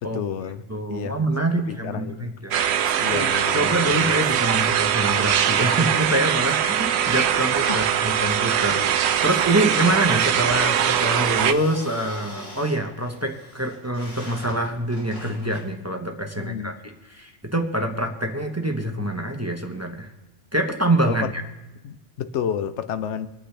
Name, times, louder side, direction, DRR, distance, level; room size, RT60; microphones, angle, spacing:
voice 1, 0.0-0.6 0.9-1.3 1.7-2.4 3.0-4.3 7.7-7.8 16.4-16.8 21.1-21.3 21.8-23.3, left 8 dB, 75° left, 1.0 m, -31 dB
voice 2, 0.7-16.7 17.1-20.1 20.5-21.4, right 1 dB, 15° right, 1.0 m, -25 dB
sound 1, 2.5-11.5, right 9 dB, 70° right, 0.9 m, -22 dB
sound 2, 2.8-15.7, left 1 dB, 45° left, 3.3 m, -42 dB
25.5 x 8.6 x 3.4 m
omnidirectional pair, 1.2 m